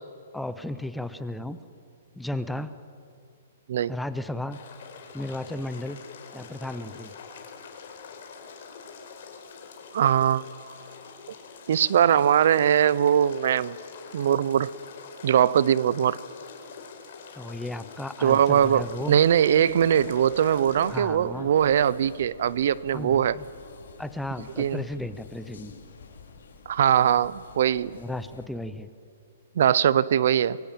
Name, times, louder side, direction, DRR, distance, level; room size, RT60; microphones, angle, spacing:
voice 1, 0.3-1.6 2.2-2.7 3.9-4.6 5.1-6.0 6.3-7.1 17.3-19.1 20.9-21.5 22.9-23.4 24.0-25.7 27.9-28.9, left 1 dB, ahead, 12 dB, 0.6 m, -34 dB
sound 1, 4.5-21.0, left 5 dB, 45° left, 4.2 m, -45 dB
voice 2, 9.9-10.7 11.7-13.7 14.1-14.7 15.2-16.2 18.2-23.4 24.6-24.8 26.7-28.0 29.6-30.6, right 9 dB, 50° right, 20 dB, 0.6 m, -21 dB
sound 2, 18.6-28.5, left 5 dB, 75° left, 3.6 m, -47 dB
25.5 x 22.5 x 9.0 m, 2.3 s
hypercardioid pair, 170°, 0 cm